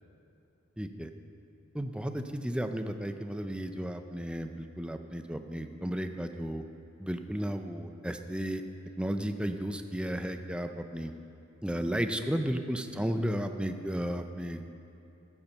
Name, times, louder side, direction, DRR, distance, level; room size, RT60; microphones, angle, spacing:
voice 1, 0.8-1.1 1.7-6.6 7.0-8.6 9.0-11.1 11.6-14.7, equal, 5° right, 7 dB, 0.4 m, -33 dB
15.0 x 7.2 x 6.7 m, 2.8 s
head